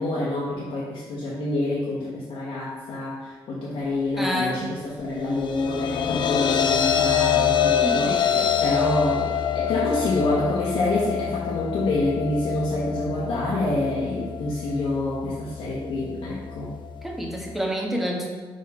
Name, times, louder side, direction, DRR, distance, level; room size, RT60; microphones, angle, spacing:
voice 1, 0.0-16.7, left 2 dB, 75° left, -6 dB, 1.1 m, -27 dB
voice 2, 4.2-4.7 7.3-7.5 7.8-8.6 17.0-18.3, equal, ahead, -1 dB, 1.1 m, -29 dB
sound 1, 5.2-17.6, left 8 dB, 55° left, 0.4 m, -26 dB
5.0 x 4.9 x 4.1 m, 1.4 s
cardioid pair, 100°, 10 cm